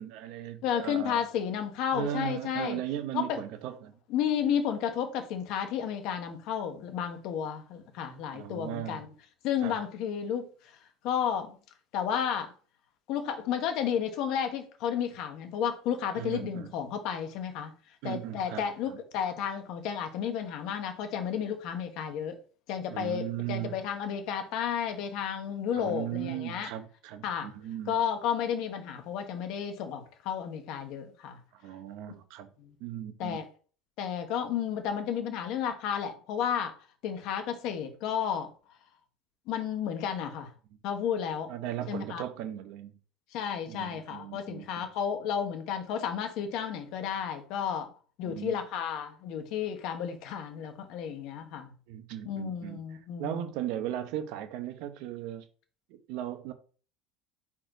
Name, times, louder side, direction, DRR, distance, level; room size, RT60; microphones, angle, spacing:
voice 1, 0.0-1.2 1.9-3.9 8.3-9.0 9.6-9.8 16.1-16.7 18.0-19.0 22.9-23.7 25.8-28.0 31.5-32.5 32.8-33.4 41.5-42.9 43.7-44.9 48.3-48.6 51.9-52.8 53.2-55.5 55.9-56.5, right 11 dB, 60° right, 0.9 m, -37 dB
voice 2, 0.6-2.8 3.1-3.4 4.1-9.1 9.4-10.5 11.0-11.6 11.9-12.5 13.1-17.7 18.0-22.4 22.7-26.7 27.2-27.5 27.9-31.4 32.6-32.7 33.2-33.5 34.0-36.8 37.0-38.5 39.5-40.5 40.8-41.5 41.9-42.2 43.3-47.9 48.2-51.7 52.2-53.5, left 8 dB, 55° left, 1.3 m, -32 dB
4.3 x 4.3 x 5.1 m
cardioid pair, 160°, 0 cm